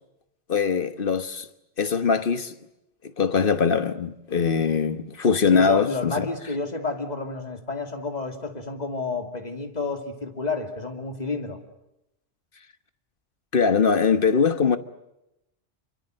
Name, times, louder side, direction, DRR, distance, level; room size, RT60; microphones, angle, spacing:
voice 1, 0.5-1.5 1.8-2.5 3.0-6.3 13.5-14.8, left 5 dB, 55° left, 1.4 m, -22 dB
voice 2, 5.5-11.6, left 3 dB, 40° left, 2.8 m, -30 dB
27.0 x 24.5 x 7.8 m
omnidirectional pair, 1.1 m